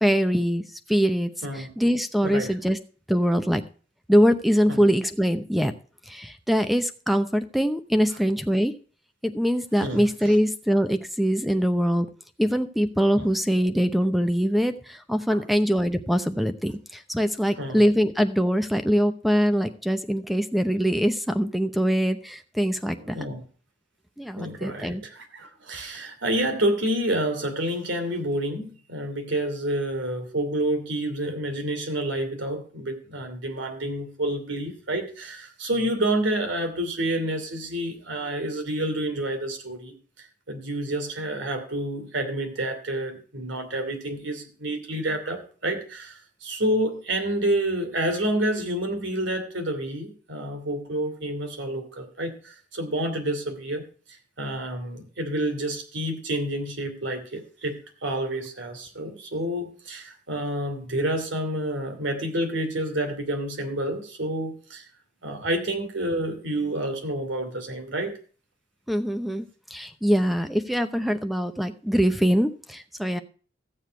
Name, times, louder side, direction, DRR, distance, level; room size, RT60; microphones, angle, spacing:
voice 1, 0.0-2.8 3.1-3.6 4.1-5.7 6.1-8.7 9.2-12.1 12.4-23.2 24.2-25.0 68.9-69.5 69.7-73.2, equal, ahead, 9 dB, 0.7 m, -23 dB
voice 2, 23.1-23.4 24.3-53.8 54.4-64.8 65.2-68.1, right 1 dB, 85° right, 5 dB, 2.8 m, -29 dB
15.0 x 7.3 x 4.5 m, 0.41 s
head